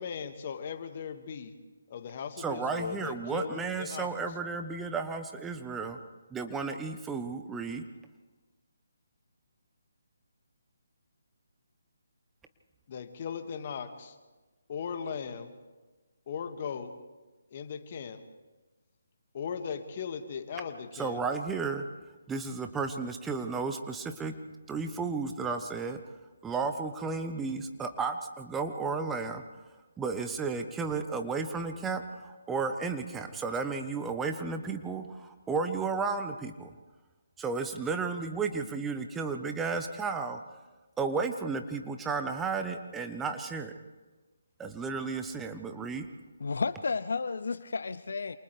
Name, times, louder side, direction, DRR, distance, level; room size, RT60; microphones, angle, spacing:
voice 1, 0.0-1.5 1.9-4.1 12.9-14.2 14.7-15.6 16.3-16.9 17.5-18.2 19.3-21.2, left 6 dB, 40° left, 7 dB, 1.9 m, -38 dB
voice 2, 2.4-6.0 6.3-7.8 20.9-21.8 22.3-24.3 24.7-26.0 26.4-29.4 30.0-36.7 37.4-40.4 41.0-43.7 44.6-46.1, right 4 dB, 10° right, 6 dB, 1.0 m, -33 dB
voice 3, 46.4-48.4, left 4 dB, 65° left, 15 dB, 0.6 m, -32 dB
28.5 x 27.5 x 3.4 m, 1.2 s
figure-of-eight pair, 145°, 0 cm